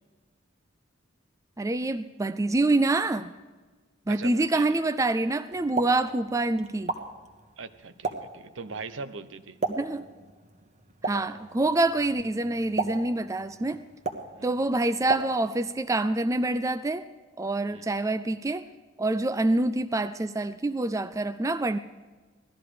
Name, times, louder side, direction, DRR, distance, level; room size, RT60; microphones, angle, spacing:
voice 1, 1.6-3.3 4.1-6.9 9.7-10.0 11.0-13.8 14.4-17.1 17.4-18.7 19.0-21.8, right 2 dB, 15° right, 12 dB, 0.4 m, -26 dB
voice 2, 4.1-4.8 7.6-9.6 14.3-14.5 17.7-17.9, right 4 dB, 70° right, 12 dB, 0.8 m, -40 dB
Explosion, 5.5-15.8, right 3 dB, 35° right, 1.3 m, -37 dB
17.5 x 13.0 x 5.0 m, 1.3 s
head